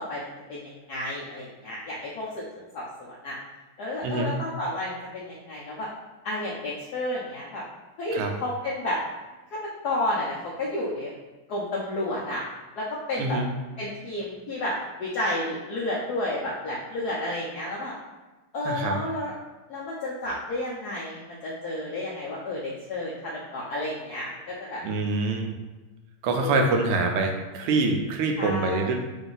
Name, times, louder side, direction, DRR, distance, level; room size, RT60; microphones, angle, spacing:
voice 1, 0.0-2.4 2.7-3.4 3.8-5.9 6.2-7.6 8.0-9.0 9.8-11.1 11.5-12.4 12.8-13.4 13.8-17.9 18.5-19.3 19.7-24.8 26.4-26.6 28.4-28.9, left 1 dB, 80° left, -5 dB, 0.9 m, -31 dB
voice 2, 4.0-4.4 8.1-8.3 13.2-13.5 18.6-19.0 24.8-25.5 26.2-28.9, right 3 dB, 80° right, 3 dB, 1.5 m, -25 dB
3.9 x 2.6 x 3.8 m, 1.2 s
omnidirectional pair, 2.4 m